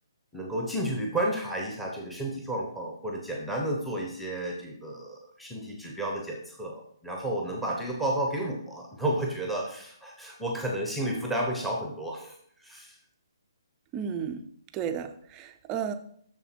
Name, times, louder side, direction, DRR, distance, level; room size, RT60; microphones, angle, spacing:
voice 1, 0.3-13.0, right 1 dB, ahead, 0 dB, 0.8 m, -32 dB
voice 2, 13.9-14.4 14.7-15.9, right 8 dB, 15° right, 8 dB, 0.4 m, -33 dB
7.0 x 6.4 x 4.4 m, 0.64 s
hypercardioid pair, 170°, 2 cm